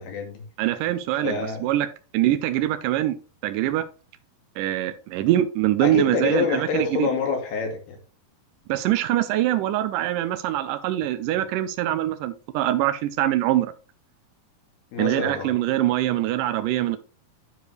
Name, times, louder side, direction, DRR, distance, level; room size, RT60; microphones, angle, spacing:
voice 1, 0.0-0.4 1.2-1.7 5.8-8.0 14.9-15.5, left 5 dB, 90° left, 4.1 m, -27 dB
voice 2, 0.6-1.9 2.1-3.2 3.4-3.8 4.6-7.1 8.7-13.7 15.0-17.0, right 13 dB, 90° right, 1.9 m, -23 dB
11.5 x 4.9 x 3.2 m
omnidirectional pair, 4.4 m